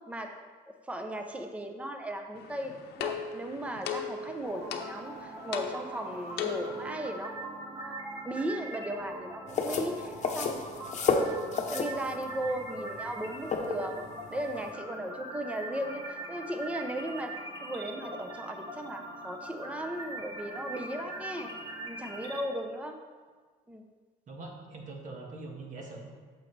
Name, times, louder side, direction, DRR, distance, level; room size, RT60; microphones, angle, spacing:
voice 1, 0.7-10.6 11.7-14.0 14.3-17.3 17.6-21.5 21.8-23.0 23.7-23.8, right 1 dB, 10° right, 4 dB, 0.8 m, -37 dB
sound 1, 2.4-6.9, left 7 dB, 75° left, 0.9 m, -38 dB
sound 2, 4.4-22.4, right 1 dB, 30° right, 2.0 m, -42 dB
sound 3, 9.5-14.7, left 4 dB, 45° left, 1.0 m, -31 dB
voice 2, 24.3-26.1, right 3 dB, 45° right, 0 dB, 1.7 m, -43 dB
9.0 x 7.3 x 3.3 m, 1.5 s
cardioid pair, 110°, 17 cm